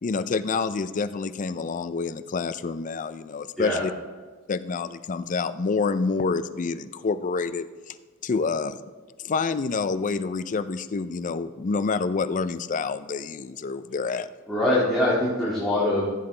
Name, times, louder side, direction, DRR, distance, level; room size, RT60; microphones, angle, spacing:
voice 1, 0.0-3.9 4.5-8.0 8.2-8.8 9.2-14.3, left 4 dB, 40° left, 12 dB, 0.4 m, -28 dB
voice 2, 14.5-16.1, left 1 dB, ahead, -10 dB, 2.1 m, -23 dB
15.0 x 7.9 x 3.3 m, 1.5 s
head